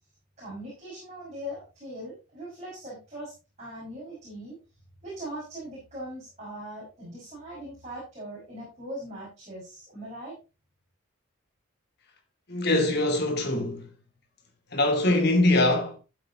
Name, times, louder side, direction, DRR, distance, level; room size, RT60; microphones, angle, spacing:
voice 1, 0.4-4.6 5.0-10.4, equal, 30° right, 5.6 m, -40 dB
voice 2, 12.5-13.9 14.7-16.0, left 1 dB, 50° left, 2.5 m, -23 dB
13.5 x 7.8 x 2.9 m
head